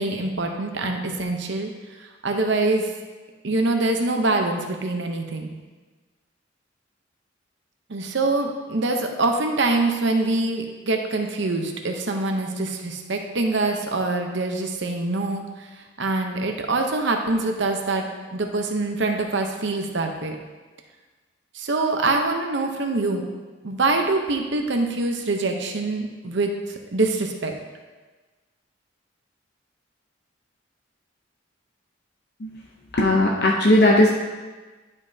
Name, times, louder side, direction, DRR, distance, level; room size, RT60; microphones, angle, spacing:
voice 1, 0.0-1.7 2.0-2.9 3.4-5.5 7.9-18.1 18.3-20.4 21.5-23.3 23.6-27.5, right 2 dB, 60° right, 3 dB, 0.8 m, -24 dB
voice 2, 33.0-34.1, left 1 dB, 55° left, -1 dB, 0.7 m, -17 dB
11.5 x 5.3 x 2.8 m, 1.3 s
head